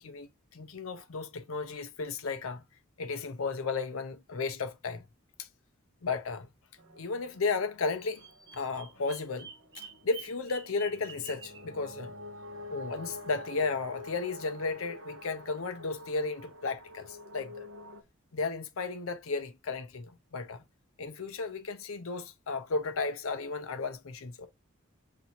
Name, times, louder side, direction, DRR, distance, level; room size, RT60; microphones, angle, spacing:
voice 1, 0.0-2.6 3.0-5.0 5.4-5.5 6.0-6.5 6.9-8.2 8.5-9.5 9.7-12.1 12.7-17.7 18.3-20.6 21.0-24.5, left 4 dB, 85° left, 0.7 m, -34 dB
sound 1, 6.8-18.0, left 1 dB, 65° right, 0.9 m, -47 dB
Bird vocalization bird call bird song, 7.9-11.7, right 5 dB, 20° right, 0.6 m, -48 dB
6.8 x 2.7 x 2.9 m
head